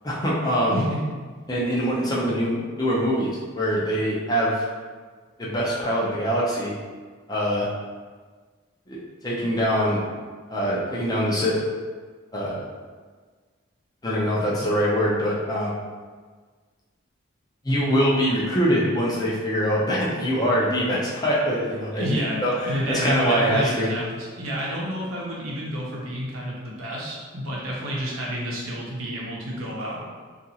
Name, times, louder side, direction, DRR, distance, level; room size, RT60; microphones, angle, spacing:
voice 1, 0.0-0.8 1.5-4.7 5.4-6.7 7.3-7.7 8.9-9.0 9.2-10.0 10.5-11.5 12.3-12.7 14.0-15.7 17.6-23.9, equal, 20° left, -5 dB, 0.5 m, -23 dB
voice 2, 0.7-1.0 21.9-30.1, equal, 90° right, -4 dB, 0.7 m, -29 dB
2.8 x 2.4 x 2.7 m, 1.5 s
head